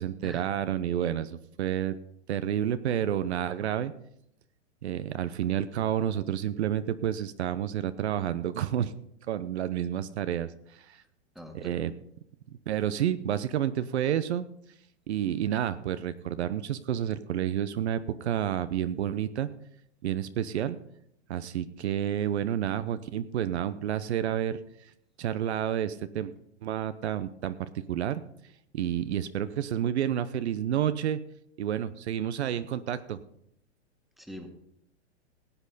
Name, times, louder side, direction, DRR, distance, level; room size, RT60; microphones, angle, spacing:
voice 1, 0.0-2.0 2.3-3.9 4.8-8.9 9.3-11.0 11.5-11.9 12.7-14.5 15.1-19.5 20.0-20.8 21.3-24.9 25.2-26.3 26.6-28.2 28.7-31.2 31.6-33.2, right 10 dB, 70° right, 12 dB, 0.8 m, -30 dB
voice 2, 11.3-11.7 34.2-34.5, equal, ahead, 4 dB, 1.8 m, -42 dB
18.0 x 8.2 x 4.1 m, 0.73 s
hypercardioid pair, 120°, 34 cm